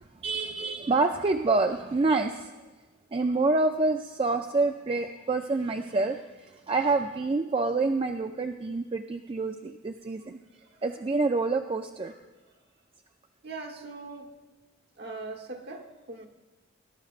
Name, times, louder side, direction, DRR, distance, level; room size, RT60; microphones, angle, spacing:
voice 1, 0.2-2.5 3.1-10.4 10.8-12.1, right 3 dB, 25° right, 5 dB, 0.3 m, -27 dB
voice 2, 13.4-14.3 15.0-16.3, right 3 dB, 50° right, 3 dB, 1.1 m, -41 dB
20.0 x 11.5 x 2.5 m, 1.2 s
head